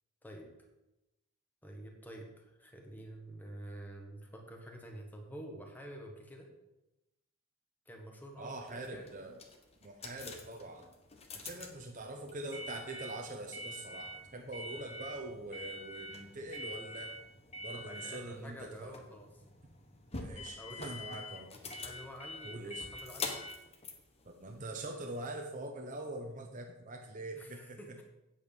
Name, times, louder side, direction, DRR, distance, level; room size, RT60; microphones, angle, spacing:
voice 1, 1.6-6.5 7.8-9.1 17.7-19.4 20.6-20.9 21.8-23.3 27.3-28.0, equal, 10° left, 1 dB, 1.5 m, -49 dB
voice 2, 8.4-9.3 9.8-10.9 11.4-17.1 17.6-18.9 20.1-21.5 22.4-22.9 24.2-27.8, right 2 dB, 35° right, 2 dB, 0.9 m, -43 dB
sound 1, 8.6-25.0, left 2 dB, 25° left, 1.1 m, -45 dB
8.7 x 8.0 x 5.5 m, 0.94 s
head